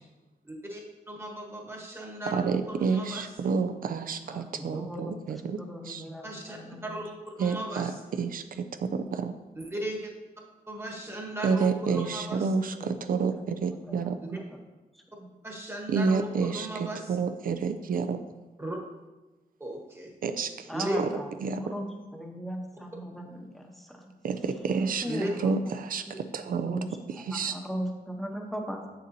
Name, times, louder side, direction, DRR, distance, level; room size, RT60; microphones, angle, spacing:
voice 1, 0.4-3.5 6.2-7.9 9.5-10.1 10.7-12.5 15.4-17.1 18.6-18.8 19.6-20.1 20.7-21.0 25.0-25.3, right 1 dB, 15° right, -1 dB, 1.2 m, -36 dB
voice 2, 2.3-6.0 7.4-9.3 11.4-14.2 15.9-18.2 20.2-20.7 21.0-21.1 21.4-21.6 24.2-27.5, right 5 dB, 70° right, 9 dB, 0.4 m, -29 dB
voice 3, 4.3-7.1 11.8-12.4 12.7-13.4 13.7-14.6 14.9-15.3 20.7-21.3 21.6-24.1 25.0-25.5 26.1-26.9 27.1-28.9, equal, ahead, 1 dB, 0.8 m, -39 dB
7.5 x 6.6 x 2.7 m, 1.1 s
wide cardioid pair, 160°, 15 cm